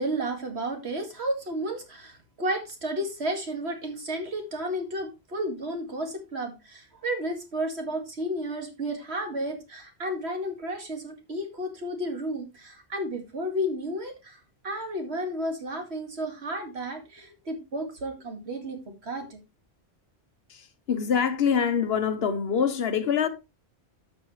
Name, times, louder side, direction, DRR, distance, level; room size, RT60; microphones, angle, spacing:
voice 1, 0.0-19.4, right 1 dB, 80° right, 2.4 m, -32 dB
voice 2, 20.9-23.3, left 7 dB, 65° left, 1.2 m, -24 dB
12.0 x 6.4 x 3.1 m
omnidirectional pair, 1.1 m